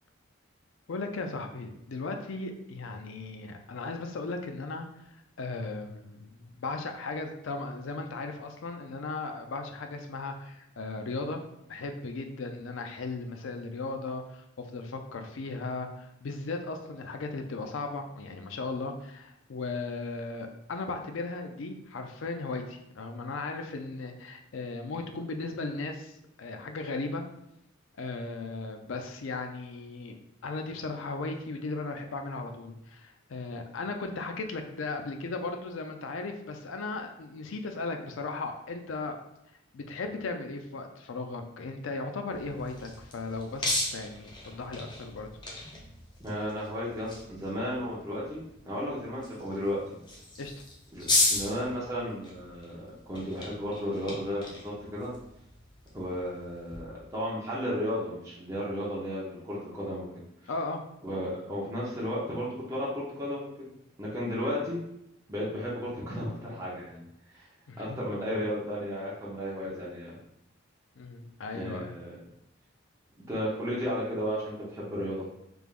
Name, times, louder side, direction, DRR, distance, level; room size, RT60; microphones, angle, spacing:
voice 1, 0.9-4.9 5.4-11.4 11.7-27.2 28.0-30.2 30.4-39.2 39.7-45.3 50.4-50.5 60.5-60.8 67.7-68.0 71.0-71.9, left 3 dB, 70° left, 5 dB, 0.5 m, -36 dB
sound 1, 42.3-56.8, left 2 dB, 20° left, 0.6 m, -36 dB
voice 2, 46.2-50.0 50.9-55.1 55.9-60.1 61.0-63.5 64.0-64.8 65.3-67.5 67.8-70.2 71.5-72.2 73.3-75.3, equal, 15° right, -7 dB, 0.8 m, -34 dB
3.5 x 3.4 x 2.4 m, 0.81 s
head